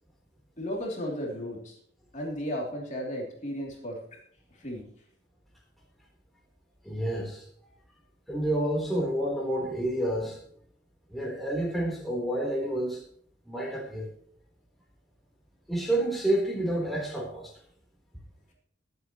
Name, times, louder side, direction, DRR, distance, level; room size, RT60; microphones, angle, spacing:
voice 1, 0.6-1.8 2.1-4.0 4.6-4.8, equal, 40° left, -2 dB, 3.1 m, -34 dB
voice 2, 6.8-7.4 8.3-10.4 11.1-13.0 13.5-14.1 15.7-17.5, right 1 dB, ahead, -3 dB, 3.7 m, -29 dB
22.0 x 8.3 x 3.1 m, 0.62 s
head